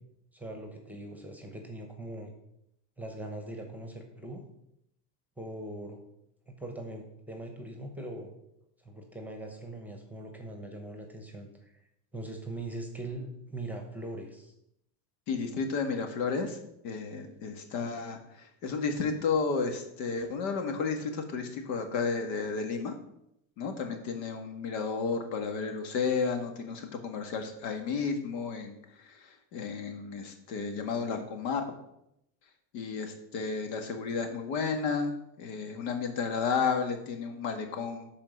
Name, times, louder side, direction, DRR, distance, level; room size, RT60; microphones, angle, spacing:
voice 1, 0.3-2.3 3.0-4.4 5.4-6.0 6.5-8.3 8.8-11.7 12.1-14.5, right 1 dB, 5° right, 3 dB, 0.9 m, -41 dB
voice 2, 15.3-16.6 16.8-18.2 18.6-22.9 23.6-28.8 29.1-31.6 32.7-35.1 35.4-38.1, left 5 dB, 85° left, 5 dB, 1.9 m, -32 dB
12.0 x 4.4 x 5.3 m, 0.81 s
cardioid pair, 155°, 48 cm